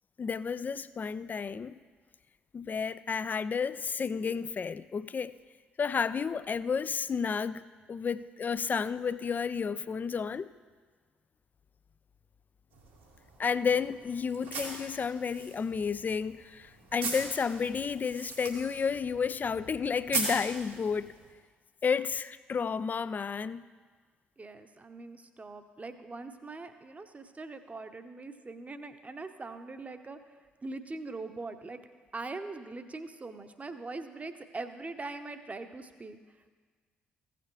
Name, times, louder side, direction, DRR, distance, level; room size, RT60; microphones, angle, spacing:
voice 1, 0.2-1.8 2.5-5.3 5.8-10.5 13.4-21.2 21.8-23.6, left 6 dB, 35° left, 16 dB, 0.4 m, -31 dB
sound 1, 12.7-21.3, right 3 dB, 85° right, 2.2 m, -40 dB
voice 2, 24.4-30.2 30.6-31.8 32.1-36.2, right 3 dB, 25° right, 9 dB, 0.9 m, -42 dB
16.0 x 6.9 x 3.2 m, 1.5 s
figure-of-eight pair, 45°, 5 cm